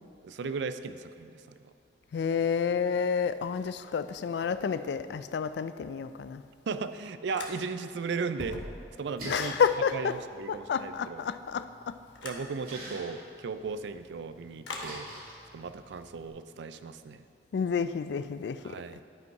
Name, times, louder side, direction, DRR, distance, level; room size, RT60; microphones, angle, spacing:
voice 1, 0.2-1.6 6.7-8.6 9.0-9.6 9.9-11.2 12.2-15.1 15.5-17.2 18.6-19.0, right 4 dB, 70° right, 11 dB, 0.4 m, -36 dB
voice 2, 2.1-6.4 9.3-10.2 10.5-11.9 17.5-18.6, left 6 dB, 65° left, 13 dB, 0.3 m, -29 dB
sound 1, 7.3-7.9 8.3-9.6 12.2-12.5 14.6-15.0, left 2 dB, 85° left, 1.0 m, -40 dB
Splash splatter, 9.0-16.3, right 1 dB, 50° right, 2.2 m, -49 dB
11.0 x 5.2 x 4.7 m, 2.4 s
head